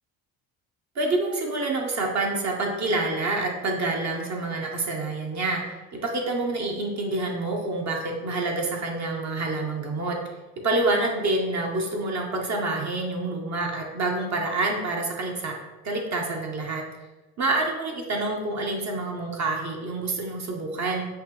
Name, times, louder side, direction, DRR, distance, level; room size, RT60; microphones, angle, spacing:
voice 1, 0.9-5.6 5.9-10.2 10.6-15.5 15.8-16.8 17.4-21.1, right 2 dB, 45° right, 0 dB, 0.9 m, -27 dB
5.7 x 2.1 x 3.0 m, 1.1 s
supercardioid pair, 65°, 38 cm